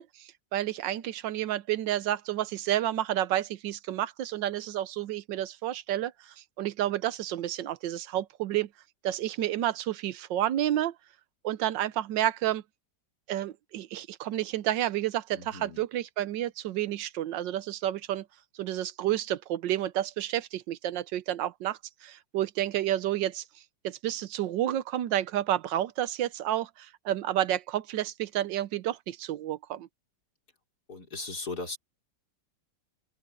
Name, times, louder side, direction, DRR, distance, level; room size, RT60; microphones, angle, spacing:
voice 1, 0.0-8.7 9.0-10.9 11.4-12.6 13.3-18.2 18.6-23.4 23.8-29.9, right 12 dB, 85° right, 1.4 m, -30 dB
voice 2, 15.3-15.8 30.9-31.8, left 3 dB, 60° left, 5.3 m, -38 dB
omnidirectional pair, 1.9 m